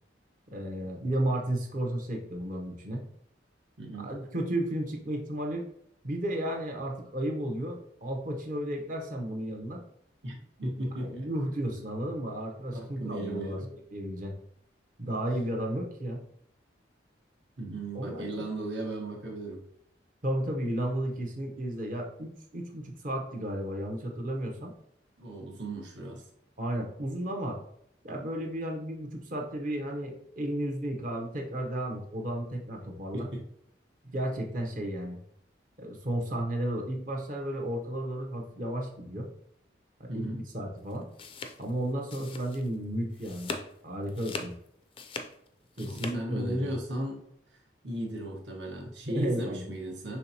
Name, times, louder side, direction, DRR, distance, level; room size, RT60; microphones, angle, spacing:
voice 1, 0.5-3.0 4.0-5.6 6.0-9.8 11.0-13.6 13.9-14.4 15.0-16.2 17.9-18.5 20.2-24.7 26.6-27.6 28.0-33.3 34.0-35.2 35.8-39.3 40.0-41.1 41.6-43.6 43.8-44.5 45.8-46.7 49.1-49.7, right 1 dB, 45° right, 2 dB, 0.8 m, -33 dB
voice 2, 3.8-4.1 10.2-11.2 12.7-13.7 17.6-19.6 25.2-26.3 33.1-33.4 40.1-40.4 45.8-47.2 47.8-50.2, right 1 dB, 75° right, 0 dB, 1.2 m, -36 dB
sound 1, 40.9-42.8 43.1-43.7 44.1-46.1, left 3 dB, 30° left, 0.4 m, -40 dB
5.5 x 3.3 x 2.8 m, 0.70 s
head